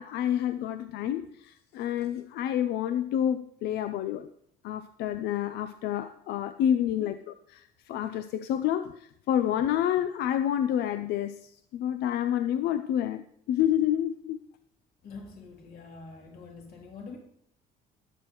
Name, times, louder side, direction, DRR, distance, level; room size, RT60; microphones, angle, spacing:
voice 1, 0.0-4.3 4.6-7.1 7.5-14.4, left 10 dB, 75° left, 10 dB, 0.5 m, -29 dB
voice 2, 15.0-17.2, left 4 dB, 60° left, 0 dB, 2.8 m, -46 dB
20.0 x 7.6 x 3.1 m, 0.68 s
cardioid pair, 110°, 17 cm